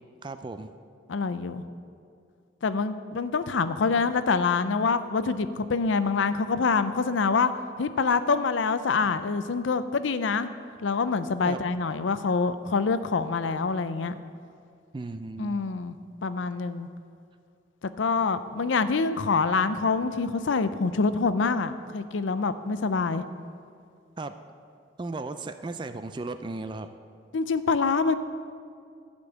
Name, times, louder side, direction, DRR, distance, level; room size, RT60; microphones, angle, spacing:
voice 1, 0.2-0.7 11.4-11.6 14.9-15.6 24.2-24.3 25.0-26.9, right 3 dB, 25° right, 10 dB, 0.3 m, -35 dB
voice 2, 1.1-1.6 2.6-7.5 7.8-10.5 10.8-14.2 15.4-16.0 16.2-16.9 18.0-23.2 27.3-28.2, left 4 dB, 90° left, 12 dB, 0.5 m, -26 dB
12.0 x 5.3 x 8.0 m, 2.3 s
head